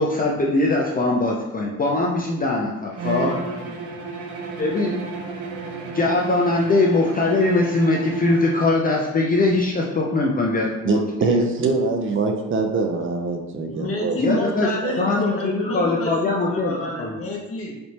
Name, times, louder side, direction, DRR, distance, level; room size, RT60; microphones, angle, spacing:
voice 1, 0.0-3.3 4.6-5.0 5.9-11.0 11.3-11.4 14.2-14.7 15.0-16.7 17.0-17.2, left 2 dB, 30° left, -2 dB, 0.6 m, -21 dB
Bowed string instrument, 2.9-8.7, right 3 dB, 85° right, 0.8 m, -32 dB
voice 2, 3.1-3.8 13.7-17.8, left 2 dB, 50° left, 0 dB, 1.1 m, -29 dB
voice 3, 10.8-14.4 14.8-15.0, right 3 dB, 45° right, 3 dB, 0.6 m, -23 dB
4.1 x 3.3 x 2.9 m, 1.0 s
cardioid pair, 90°, 30 cm